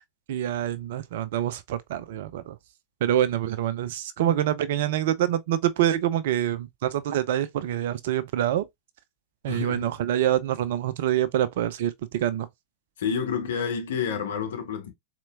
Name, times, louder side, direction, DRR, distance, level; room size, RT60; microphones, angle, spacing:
voice 1, 0.3-2.6 3.0-8.6 9.4-12.5, right 11 dB, 55° right, 0.4 m, -26 dB
voice 2, 9.5-9.9 13.0-14.9, left 7 dB, 60° left, 0.8 m, -29 dB
4.1 x 2.9 x 2.3 m
figure-of-eight pair, 90°, 0 cm